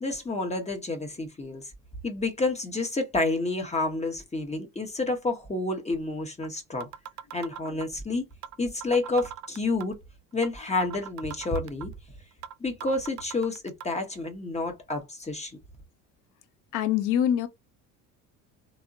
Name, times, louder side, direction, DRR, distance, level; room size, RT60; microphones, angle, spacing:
voice 1, 0.0-1.7 2.0-6.9 7.3-8.3 8.6-10.0 10.3-11.9 12.6-15.6, left 2 dB, 15° left, 1.0 m, -29 dB
sound 1, 5.9-6.0 6.4-6.5 6.8-8.0 8.4-8.6 8.8-10.0 10.4-10.5 10.8-12.0 12.4-12.5 12.8-13.8, right 9 dB, 45° right, 0.5 m, -39 dB
voice 2, 16.7-17.5, left 10 dB, 50° left, 0.7 m, -24 dB
3.4 x 2.1 x 2.6 m
hypercardioid pair, 70°, 40 cm